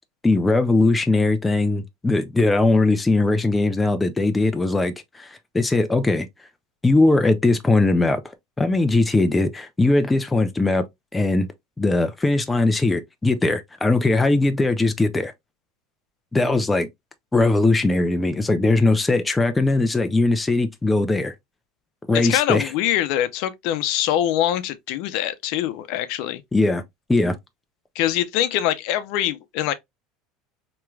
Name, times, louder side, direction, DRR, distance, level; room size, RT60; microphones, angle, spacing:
voice 1, 0.2-6.3 6.8-8.2 8.6-10.8 11.1-11.5 11.8-15.3 16.3-16.9 17.3-21.3 22.1-22.7 26.5-26.8 27.1-27.4, left 2 dB, 10° left, 0.4 m, -20 dB
voice 2, 22.1-26.4 27.9-29.7, left 12 dB, 60° left, 0.6 m, -23 dB
4.6 x 3.0 x 2.3 m
cardioid pair, 155°, 0 cm